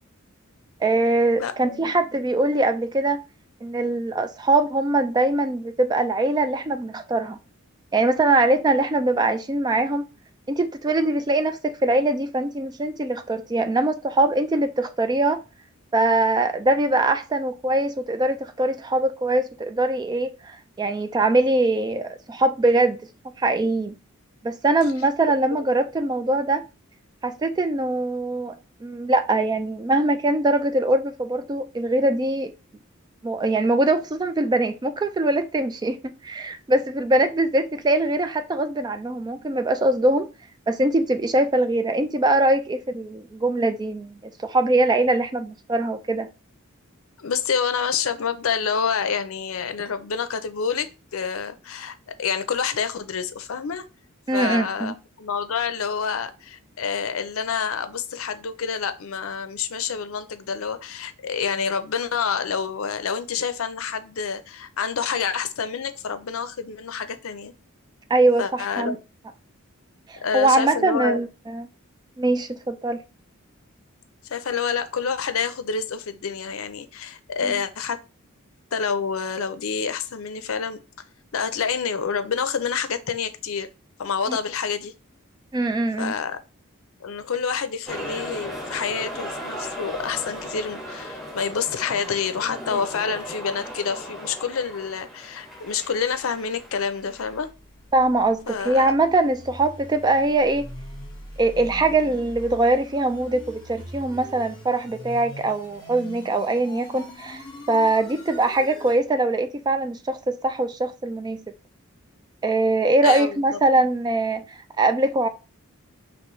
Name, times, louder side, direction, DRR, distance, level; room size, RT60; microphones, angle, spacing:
voice 1, 0.8-3.2 3.6-7.4 7.9-10.0 10.5-15.4 15.9-23.0 23.4-23.9 24.4-26.6 27.2-28.6 28.8-32.5 33.2-40.3 40.7-46.3 54.3-54.9 68.1-69.0 70.1-71.7 72.2-73.0 77.4-77.5 84.3-84.4 85.5-86.1 97.9-100.7 101.4-111.4 112.4-114.4 114.8-115.3, right 2 dB, 20° right, 0.3 m, -22 dB
voice 2, 1.4-2.0 25.5-25.6 47.2-53.8 54.3-67.5 68.4-69.0 70.2-71.2 74.3-78.0 78.7-80.8 81.3-83.7 84.0-84.9 86.0-86.4 87.0-97.5 98.5-99.0 113.0-113.6, left 6 dB, 70° left, 0.5 m, -28 dB
sound 1, 87.9-97.4, equal, ahead, 1.8 m, -37 dB
sound 2, 96.9-109.0, left 1 dB, 20° left, 1.5 m, -42 dB
5.3 x 3.0 x 3.1 m
head